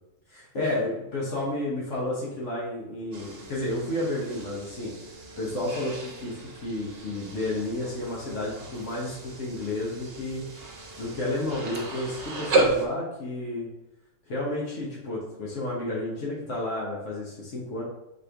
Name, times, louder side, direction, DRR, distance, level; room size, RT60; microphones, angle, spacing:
voice 1, 0.3-4.9 5.4-10.5 11.0-13.7 14.3-17.8, left 1 dB, 75° left, -5 dB, 1.4 m, -31 dB
sound 1, 3.1-12.9, right 3 dB, 55° right, 1.0 m, -33 dB
4.6 x 3.2 x 3.3 m, 0.94 s
omnidirectional pair, 1.3 m